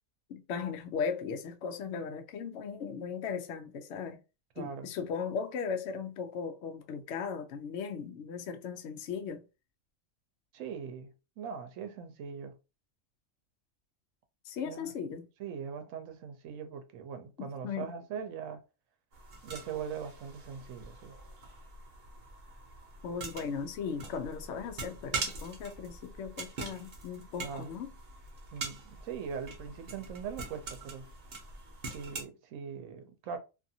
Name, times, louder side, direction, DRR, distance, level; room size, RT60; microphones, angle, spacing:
voice 1, 0.3-4.2 4.6-9.4 14.5-15.3 17.4-17.9 23.0-27.9, left 6 dB, 70° left, 0.8 m, -37 dB
voice 2, 4.6-4.9 10.5-12.6 14.7-14.9 15.4-18.6 19.4-21.2 27.4-27.8 28.5-31.1 31.9-33.4, right 7 dB, 75° right, 1.0 m, -41 dB
sound 1, 19.1-32.2, right 4 dB, 50° right, 0.9 m, -43 dB
2.6 x 2.5 x 2.7 m
omnidirectional pair, 1.4 m